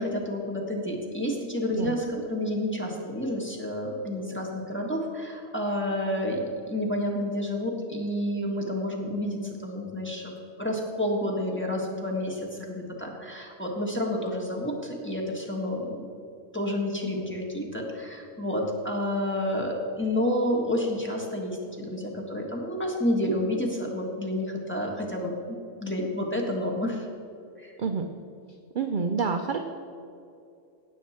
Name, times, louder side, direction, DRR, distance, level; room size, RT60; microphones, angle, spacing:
voice 1, 0.0-10.3 10.6-16.1 16.5-27.0 27.6-27.7, left 1 dB, 10° left, -1 dB, 1.5 m, -30 dB
voice 2, 1.7-2.2 27.8-28.1 28.7-29.6, right 5 dB, 50° right, 5 dB, 0.6 m, -28 dB
17.0 x 7.1 x 4.3 m, 2.6 s
omnidirectional pair, 1.4 m